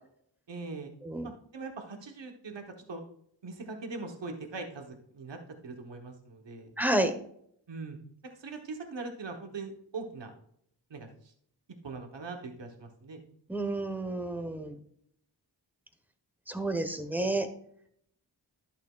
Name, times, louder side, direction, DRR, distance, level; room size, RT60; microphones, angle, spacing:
voice 1, 0.5-0.9 1.2-3.0 3.4-6.7 7.7-8.0 8.2-10.3 10.9-11.3 11.8-13.2 17.2-17.3, right 3 dB, 75° right, 3 dB, 1.1 m, -41 dB
voice 2, 6.8-7.1 13.5-14.8 16.5-17.5, right 1 dB, 5° right, 8 dB, 1.1 m, -30 dB
11.0 x 6.8 x 2.4 m, 0.66 s
wide cardioid pair, 60°, 44 cm